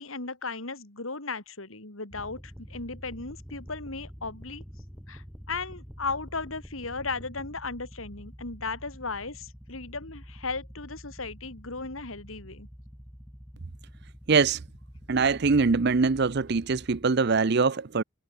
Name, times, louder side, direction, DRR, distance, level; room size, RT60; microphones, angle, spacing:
voice 1, 0.0-4.6 5.1-12.7, left 4 dB, 80° left, 3.3 m, -36 dB
sound 1, 2.1-17.0, equal, ahead, 2.7 m, -47 dB
voice 2, 14.3-14.6 15.1-18.0, right 4 dB, 55° right, 0.6 m, -23 dB
head